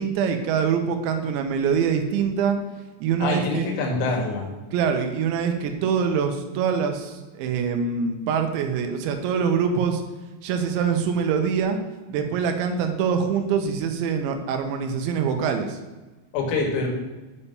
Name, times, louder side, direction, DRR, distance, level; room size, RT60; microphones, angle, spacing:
voice 1, 0.0-2.6 3.0-3.7 4.7-10.0 10.4-11.8 12.1-15.8, right 6 dB, 80° right, 5 dB, 2.9 m, -24 dB
voice 2, 3.2-4.5 16.3-16.9, left 3 dB, 85° left, 0 dB, 4.5 m, -25 dB
8.5 x 5.6 x 6.9 m, 1.2 s
omnidirectional pair, 6.0 m